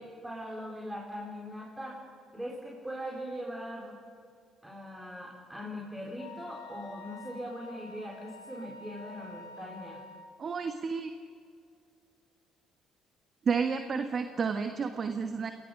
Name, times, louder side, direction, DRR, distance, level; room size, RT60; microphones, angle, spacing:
voice 1, 0.0-2.0 2.3-4.0 4.6-10.0, equal, 10° right, -1 dB, 4.5 m, -40 dB
Wind instrument woodwind instrument, 6.2-10.4, left 3 dB, 70° left, 2.0 m, -49 dB
voice 2, 10.4-11.1 13.4-15.5, right 5 dB, 45° right, 7 dB, 1.3 m, -31 dB
29.0 x 21.0 x 5.2 m, 2.3 s
figure-of-eight pair, 45°, 0 cm